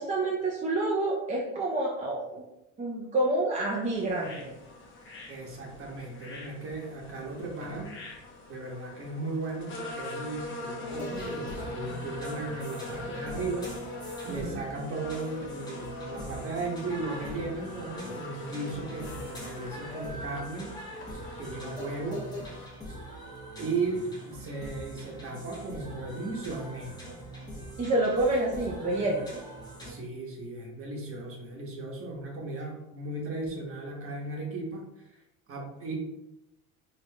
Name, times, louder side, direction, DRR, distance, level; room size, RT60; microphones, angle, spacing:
voice 1, 0.0-2.4 2.8-4.5 14.3-14.6 27.8-29.3, right 2 dB, 20° right, -4 dB, 0.6 m, -28 dB
sound 1, 3.8-22.7, left 2 dB, 35° left, 0.9 m, -42 dB
voice 2, 5.3-7.9 8.5-13.7 14.2-20.7 21.4-22.2 23.6-27.0 29.8-35.2 35.5-35.9, right 3 dB, 40° right, -1 dB, 1.1 m, -36 dB
sound 2, 10.9-29.9, equal, 10° left, 1.1 m, -42 dB
4.5 x 2.8 x 2.2 m, 0.90 s
cardioid pair, 120°, 34 cm